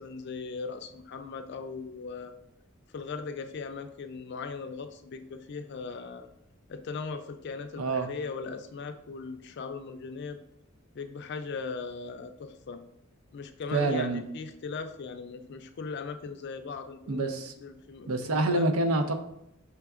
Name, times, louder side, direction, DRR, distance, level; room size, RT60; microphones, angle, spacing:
voice 1, 0.0-2.3 2.9-6.3 6.7-10.4 10.9-12.8 13.3-17.2 17.6-18.7, left 4 dB, 50° left, 8 dB, 0.3 m, -39 dB
voice 2, 7.8-8.1 13.7-14.2 17.1-17.5 18.1-19.2, right 2 dB, 80° right, 7 dB, 0.6 m, -27 dB
5.8 x 3.4 x 2.4 m, 0.84 s
head